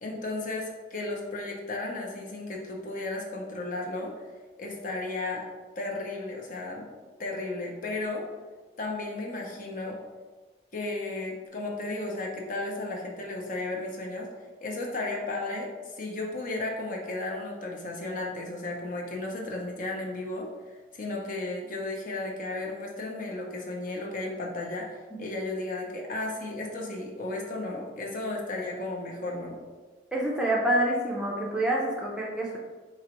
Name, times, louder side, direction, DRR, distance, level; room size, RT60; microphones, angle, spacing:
voice 1, 0.0-4.1 4.6-5.4 5.8-6.9 7.2-8.2 8.8-10.0 10.7-14.3 14.6-20.5 20.9-29.6, left 2 dB, 45° left, -1 dB, 0.7 m, -34 dB
voice 2, 30.1-32.6, right 1 dB, 5° right, -3 dB, 0.5 m, -27 dB
4.6 x 2.9 x 3.0 m, 1.3 s
head